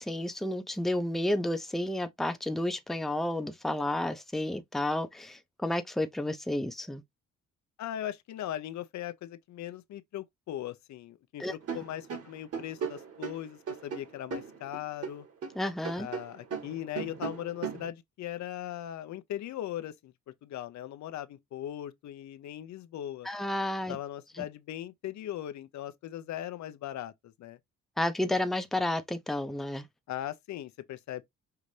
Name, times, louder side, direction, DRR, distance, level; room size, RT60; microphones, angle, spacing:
voice 1, 0.0-7.0 11.4-11.5 15.6-16.1 23.2-24.0 28.0-29.8, left 1 dB, ahead, 0.6 m, -31 dB
voice 2, 7.8-15.3 16.0-23.3 23.9-27.6 30.1-31.2, left 12 dB, 70° left, 0.6 m, -39 dB
sound 1, 11.6-15.6 15.8-17.9, right 6 dB, 50° right, 1.9 m, -37 dB
5.5 x 2.6 x 3.2 m
cardioid pair, 90°, 30 cm